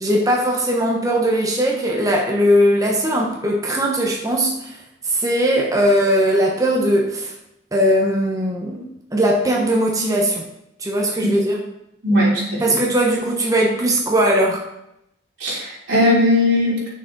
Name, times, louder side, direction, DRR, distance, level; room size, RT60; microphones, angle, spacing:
voice 1, 0.0-4.8 5.0-7.3 7.7-8.8 9.1-10.4 10.8-11.6 12.6-14.6, equal, 20° right, -1 dB, 1.0 m, -19 dB
voice 2, 12.0-12.8 15.4-16.9, left 1 dB, 90° right, -5 dB, 3.4 m, -18 dB
8.2 x 6.6 x 3.9 m, 0.81 s
head